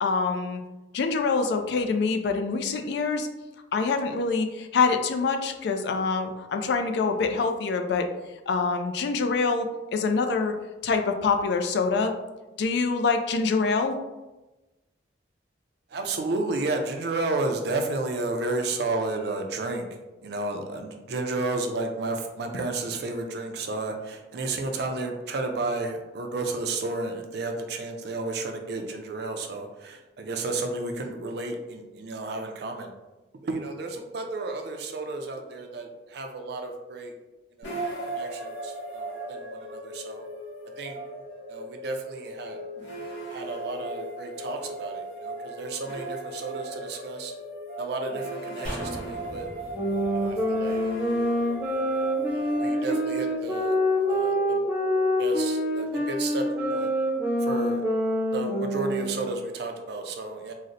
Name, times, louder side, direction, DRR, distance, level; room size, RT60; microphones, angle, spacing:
voice 1, 0.0-0.6 0.9-3.3 3.7-8.1 8.5-10.5 10.8-12.1 12.6-13.9, left 4 dB, 60° left, 6 dB, 0.3 m, -25 dB
voice 2, 15.9-19.8 20.2-32.9 33.4-37.1 37.6-40.2 40.8-41.0 41.5-42.6 43.3-47.3 47.8-49.5 50.1-50.8 51.2-51.4 52.3-53.8 54.1-54.6 55.2-56.9 57.4-57.8 58.3-60.5, right 3 dB, 60° right, 4 dB, 0.4 m, -32 dB
sound 1, 37.6-56.7, right 1 dB, 80° left, 0.8 m, -38 dB
sound 2, 48.6-52.0 52.3-52.4, equal, 25° left, 1.2 m, -40 dB
sound 3, 49.7-59.4, equal, 10° right, 0.6 m, -26 dB
3.9 x 2.1 x 2.5 m, 1.1 s
head